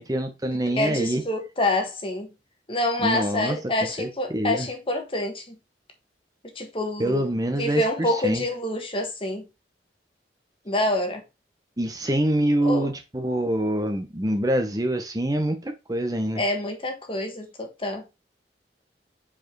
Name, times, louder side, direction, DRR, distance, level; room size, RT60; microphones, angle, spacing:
voice 1, 0.0-1.2 3.0-3.6 4.0-4.1 4.3-4.7 7.0-8.4 11.8-16.4, right 1 dB, 20° right, 0.8 m, -25 dB
voice 2, 0.7-2.3 2.7-5.6 6.5-7.3 7.6-9.4 10.6-11.2 12.6-12.9 16.4-18.0, left 1 dB, 30° left, 1.4 m, -27 dB
4.9 x 4.8 x 4.5 m
head